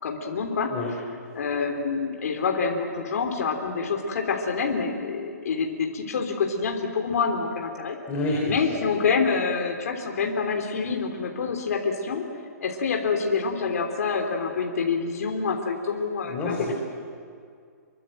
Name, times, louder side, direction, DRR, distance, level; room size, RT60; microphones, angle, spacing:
voice 1, 0.0-0.7 1.3-8.0 8.4-12.2 12.6-16.3, left 5 dB, 65° left, 2 dB, 3.4 m, -27 dB
voice 2, 8.1-8.6 16.2-16.7, left 2 dB, 15° left, -3 dB, 4.1 m, -28 dB
27.0 x 23.0 x 7.8 m, 2.2 s
hypercardioid pair, 165°, 9 cm